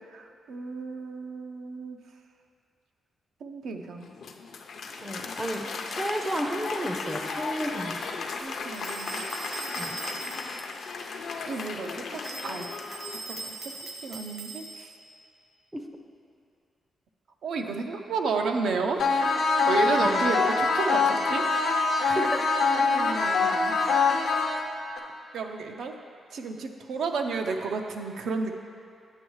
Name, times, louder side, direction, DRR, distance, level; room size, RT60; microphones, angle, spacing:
voice 1, 0.1-2.0 3.4-4.1 8.4-9.2 11.4-12.7 13.1-13.7 14.0-14.9 17.4-19.2 19.4-21.4 22.8-23.8 25.3-26.0 26.3-28.5, right 4 dB, 75° right, 4 dB, 0.5 m, -32 dB
Applause, 4.0-13.6, left 4 dB, 60° left, 0.5 m, -36 dB
voice 2, 5.0-8.0 9.8-10.0 15.7-15.9 20.0-20.2 22.0-22.6, right 1 dB, 10° right, 3 dB, 0.4 m, -32 dB
sound 1, 8.7-10.7 12.2-15.0, right 3 dB, 50° right, 0.8 m, -40 dB
sound 2, 19.0-25.0, left 4 dB, 90° left, 0.8 m, -24 dB
9.6 x 7.1 x 3.1 m, 2.4 s
wide cardioid pair, 165°, 0 cm